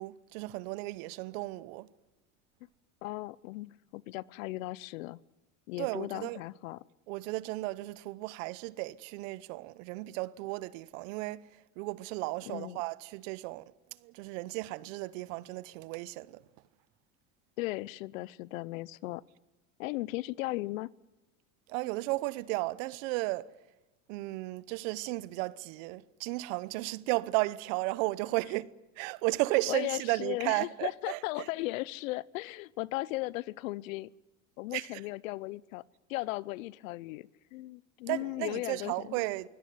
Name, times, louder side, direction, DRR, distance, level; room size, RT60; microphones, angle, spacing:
voice 1, 0.0-1.9 5.8-6.4 7.1-11.4 11.8-13.6 14.0-16.4 21.7-23.5 24.1-28.7 29.0-31.2 34.7-34.9 38.1-39.5, right 20 dB, 70° right, 1.0 m, -34 dB
voice 2, 3.0-5.2 5.7-6.8 12.5-12.8 17.6-19.2 19.8-20.9 29.7-34.1 34.6-35.8 36.1-39.2, left 19 dB, 80° left, 0.8 m, -37 dB
23.0 x 17.0 x 9.5 m
supercardioid pair, 100°, 39 cm